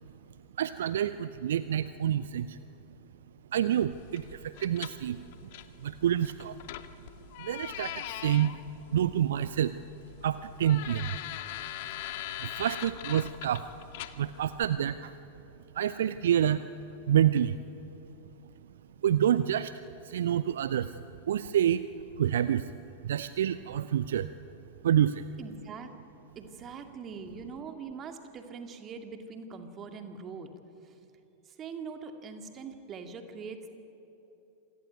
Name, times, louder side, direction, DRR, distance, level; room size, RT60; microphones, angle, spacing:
voice 1, 0.6-2.6 3.5-5.5 5.8-6.6 7.4-8.5 8.9-9.8 10.2-11.2 12.4-13.6 14.2-15.1 15.7-17.6 19.0-21.9 22.2-22.7 23.0-24.3 24.8-25.2, right 10 dB, 60° right, 14 dB, 0.6 m, -28 dB
sound 1, 3.9-14.7, left 13 dB, 50° left, 1.1 m, -42 dB
voice 2, 25.4-25.9 26.4-30.5 30.8-31.0 31.5-33.7, right 5 dB, 30° right, 6 dB, 2.4 m, -42 dB
26.5 x 18.0 x 9.4 m, 3.0 s
figure-of-eight pair, 90°, 0 cm